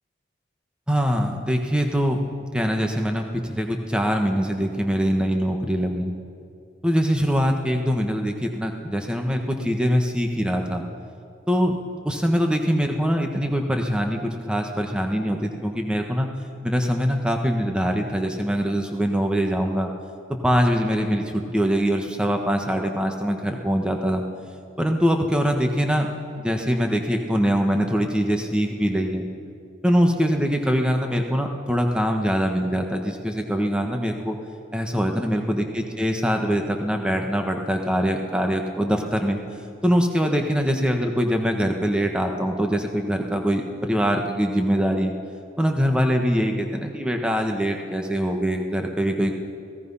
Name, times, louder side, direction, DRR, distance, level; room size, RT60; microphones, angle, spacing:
voice 1, 0.9-2.2 2.5-6.1 6.8-10.8 11.5-11.7 12.0-16.3 16.6-19.9 20.3-24.2 24.8-26.1 26.4-29.3 29.8-34.4 34.7-39.4 39.8-45.1 45.6-49.3, equal, 5° right, 3 dB, 1.4 m, -23 dB
28.0 x 18.0 x 5.7 m, 2.5 s
head